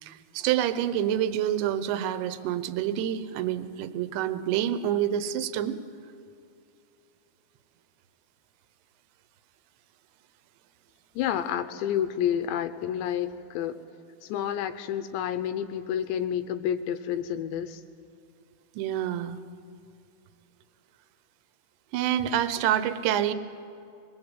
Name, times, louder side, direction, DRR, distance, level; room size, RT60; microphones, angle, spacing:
voice 1, 0.0-5.8 18.8-19.4 21.9-23.3, right 11 dB, 75° right, 11 dB, 3.0 m, -27 dB
voice 2, 11.2-13.8 14.3-17.8, left 9 dB, 80° left, 9 dB, 2.8 m, -29 dB
26.5 x 23.0 x 8.1 m, 2.6 s
omnidirectional pair, 5.6 m